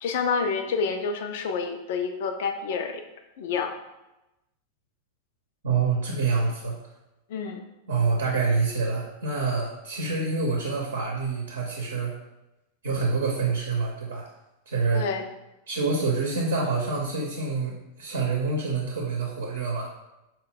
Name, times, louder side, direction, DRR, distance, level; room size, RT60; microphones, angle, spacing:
voice 1, 0.0-3.0 3.4-3.7 7.3-7.6 14.9-15.2, left 5 dB, 55° left, 6 dB, 0.4 m, -28 dB
voice 2, 5.6-6.8 7.9-12.1 12.8-14.3 14.7-15.1 15.7-19.9, right 4 dB, 65° right, -2 dB, 0.7 m, -26 dB
4.4 x 2.2 x 3.8 m, 0.95 s
figure-of-eight pair, 90°, 0 cm